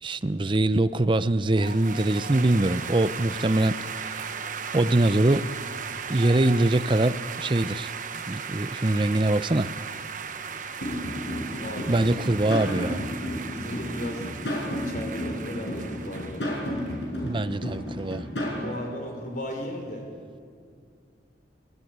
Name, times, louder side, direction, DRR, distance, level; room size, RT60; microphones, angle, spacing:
voice 1, 0.0-3.8 4.7-5.5 6.1-7.9 8.3-9.7 11.9-13.1 17.2-18.2, right 2 dB, 30° right, 0.6 m, -23 dB
sound 1, 1.5-17.0, right 6 dB, 45° right, 1.2 m, -37 dB
sound 2, 10.8-18.6, equal, 75° left, 7.6 m, -32 dB
voice 2, 11.6-12.1 13.5-14.3 14.8-16.5 18.4-20.1, equal, 50° left, 5.0 m, -35 dB
28.0 x 16.5 x 9.5 m
head